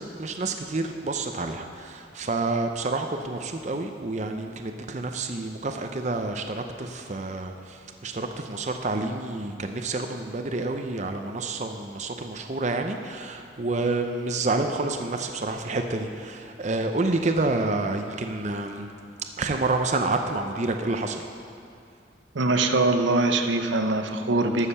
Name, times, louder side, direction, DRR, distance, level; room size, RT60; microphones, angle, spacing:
voice 1, 0.0-18.9 19.4-21.3, right 2 dB, 40° right, 5 dB, 0.6 m, -29 dB
voice 2, 22.3-24.7, right 2 dB, 85° right, 6 dB, 0.8 m, -23 dB
12.5 x 6.6 x 6.7 m, 2.5 s
head